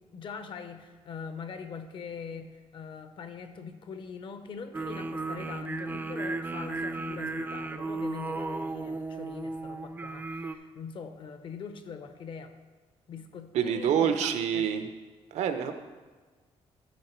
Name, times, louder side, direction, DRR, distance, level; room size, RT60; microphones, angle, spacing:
voice 1, 0.0-12.5 13.1-14.7, left 5 dB, 50° left, 9 dB, 0.7 m, -42 dB
sound 1, 4.7-10.5, right 3 dB, 15° right, 0.4 m, -35 dB
voice 2, 13.5-14.8 15.3-15.7, right 8 dB, 85° right, 8 dB, 0.7 m, -26 dB
12.5 x 4.9 x 4.5 m, 1.3 s
cardioid pair, 160°, 11 cm